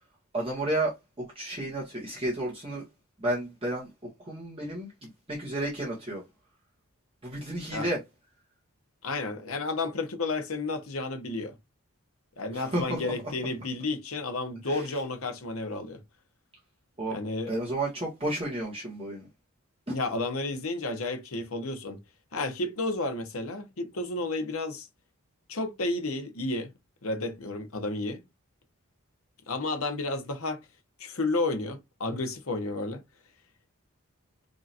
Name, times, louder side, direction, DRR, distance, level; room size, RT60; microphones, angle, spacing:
voice 1, 0.3-2.9 3.2-3.9 4.2-6.2 7.2-8.0 12.5-13.2 14.7-14.8 17.0-19.3 19.9-20.0, right 1 dB, 25° right, 1.5 m, -32 dB
voice 2, 9.0-11.5 12.4-16.0 17.1-17.5 19.9-22.0 22.3-24.9 25.5-26.7 27.0-28.2 29.5-30.6 31.0-33.0, left 2 dB, 75° left, 1.0 m, -31 dB
5.0 x 2.9 x 2.6 m
head